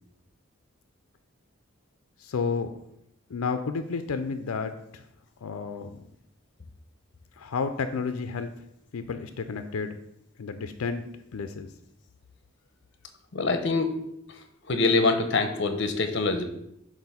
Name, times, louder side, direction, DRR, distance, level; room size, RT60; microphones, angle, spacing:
voice 1, 2.2-2.7 3.3-5.0 5.4-6.0 7.4-8.6 8.9-10.0 10.4-11.7, left 5 dB, 85° left, 9 dB, 0.4 m, -31 dB
voice 2, 13.3-13.9 14.7-16.4, left 3 dB, 55° left, 7 dB, 0.7 m, -24 dB
7.6 x 2.6 x 5.5 m, 0.78 s
head